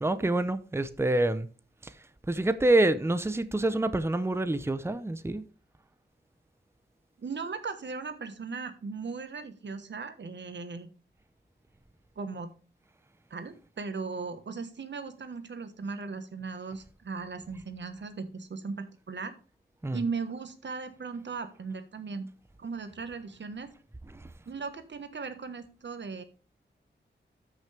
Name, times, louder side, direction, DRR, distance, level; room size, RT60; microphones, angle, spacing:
voice 1, 0.0-1.5 1.8-5.4 19.8-20.0 24.1-24.3, right 2 dB, 15° right, 0.7 m, -27 dB
voice 2, 7.2-10.9 12.2-12.5 13.3-19.3 19.9-22.3 22.6-23.7 24.5-26.2, right 4 dB, 70° right, 1.3 m, -37 dB
13.5 x 6.2 x 3.4 m
wide cardioid pair, 105°, 19 cm